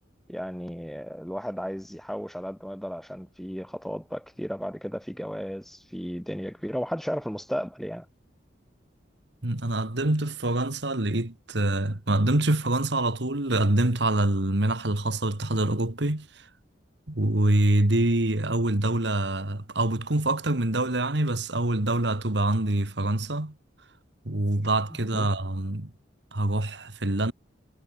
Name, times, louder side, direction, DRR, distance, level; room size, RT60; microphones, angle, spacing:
voice 1, 0.3-8.0 25.1-25.3, equal, ahead, 3.1 m, -34 dB
voice 2, 9.4-16.5 17.1-23.5 24.3-25.9 26.3-27.3, right 1 dB, 65° right, 2.1 m, -25 dB
head